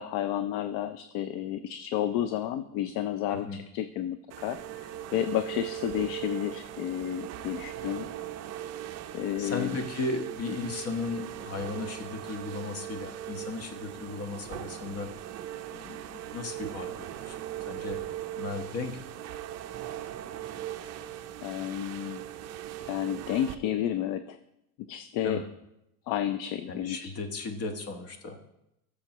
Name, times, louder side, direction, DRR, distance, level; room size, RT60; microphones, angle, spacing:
voice 1, 0.0-8.1 9.1-9.8 10.6-10.7 21.4-22.2 22.8-24.4 24.9-25.4 26.1-27.0, left 11 dB, 50° left, 11 dB, 0.5 m, -31 dB
sound 1, 4.3-23.5, right 12 dB, 35° right, 0.6 m, -39 dB
voice 2, 9.4-15.1 15.7-17.4 17.7-18.0 18.3-19.0 25.2-25.5 26.7-28.4, left 3 dB, 35° left, 6 dB, 1.2 m, -36 dB
14.5 x 7.1 x 3.0 m, 0.85 s
supercardioid pair, 125°, 44 cm